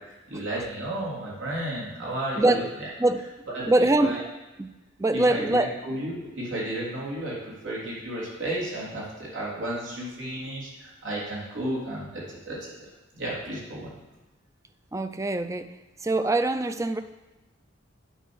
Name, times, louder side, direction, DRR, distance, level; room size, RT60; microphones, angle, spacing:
voice 1, 0.3-2.9 3.5-4.2 5.1-12.7 13.1-13.9, right 1 dB, 85° right, -6 dB, 3.4 m, -33 dB
voice 2, 3.7-4.2 4.6-4.7 5.0-5.7 14.9-15.7 16.0-17.0, right 2 dB, 15° right, 10 dB, 0.4 m, -23 dB
9.1 x 5.5 x 6.3 m, 1.1 s
head